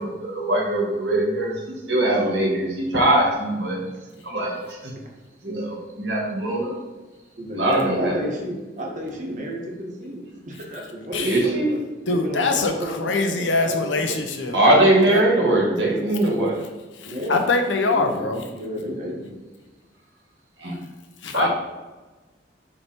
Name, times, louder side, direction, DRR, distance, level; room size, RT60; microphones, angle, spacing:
voice 1, 0.0-1.5 1.9-2.6 2.9-3.8 4.3-4.9 5.4-6.8 7.5-8.1 11.2-11.7 14.5-16.6 20.6-20.7 21.3-21.5, right 1 dB, 65° right, -3 dB, 2.0 m, -21 dB
voice 2, 1.9-2.7 3.8-3.9 7.4-11.8 12.1-14.3 17.1-17.5 17.8-19.3, equal, 40° right, -1 dB, 1.4 m, -31 dB
voice 3, 12.1-14.6 15.1-15.2 17.0-18.4 21.2-21.5, left 3 dB, 80° left, 5 dB, 0.8 m, -23 dB
7.3 x 3.3 x 4.5 m, 1.2 s
head